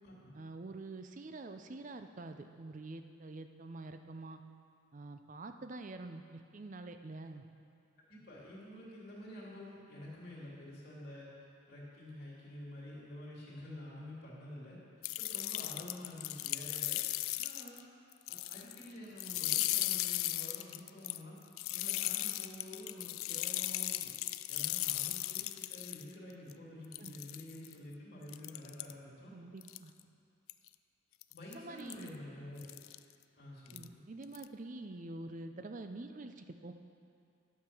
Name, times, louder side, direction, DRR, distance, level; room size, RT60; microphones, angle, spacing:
voice 1, 0.3-4.4 4.9-7.5 27.0-27.2 29.3-29.9 31.5-32.2 33.7-36.7, right 2 dB, 40° right, 7 dB, 0.5 m, -46 dB
voice 2, 8.1-11.3 11.7-17.0 17.4-17.8 18.3-21.4 21.7-29.3 31.3-32.6 33.3-34.0, left 1 dB, 50° left, -7 dB, 2.9 m, -49 dB
sound 1, 15.0-17.8 18.1-18.9 19.2-26.0 26.5-26.6 26.9-27.7 28.3-28.9 29.6-30.0 30.5-30.7 31.2-31.5 31.9-32.1 32.6-33.0 33.7-33.9 34.2-34.4, left 17 dB, 80° left, 0.3 m, -36 dB
11.5 x 6.6 x 6.0 m, 2.4 s
head